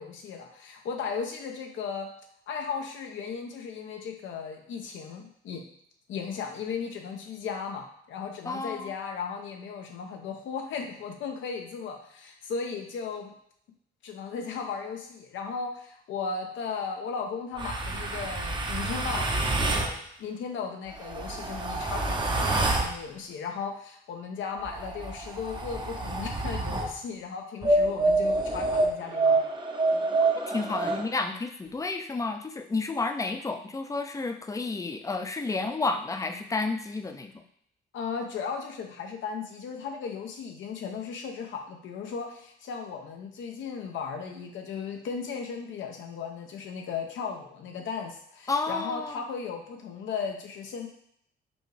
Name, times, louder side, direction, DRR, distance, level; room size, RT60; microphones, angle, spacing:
voice 1, 0.0-2.1 2.5-5.6 6.1-13.3 14.0-29.5 37.9-50.9, left 5 dB, 75° left, 3 dB, 0.7 m, -36 dB
voice 2, 8.4-8.9 30.5-37.3 48.5-49.2, left 3 dB, 15° left, 7 dB, 0.4 m, -31 dB
sound 1, 17.6-19.9 20.9-22.9 24.6-26.9 27.6-31.0, right 2 dB, 25° right, 0.6 m, -27 dB
5.1 x 2.4 x 3.3 m, 0.69 s
cardioid pair, 90°, 20 cm